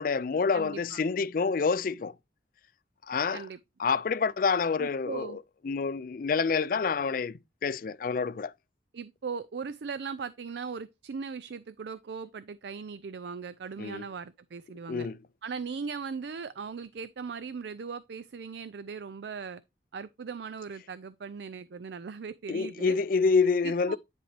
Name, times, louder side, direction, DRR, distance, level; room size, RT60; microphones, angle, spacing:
voice 1, 0.0-2.1 3.1-3.4 3.8-5.4 5.6-8.5 13.8-14.0 14.9-15.2 22.5-24.0, left 5 dB, 50° left, 0.4 m, -27 dB
voice 2, 0.5-1.1 3.3-3.6 4.8-5.4 8.9-15.1 15.4-19.6 19.9-23.0 23.6-24.0, right 5 dB, 70° right, 0.4 m, -39 dB
10.0 x 4.5 x 3.3 m
head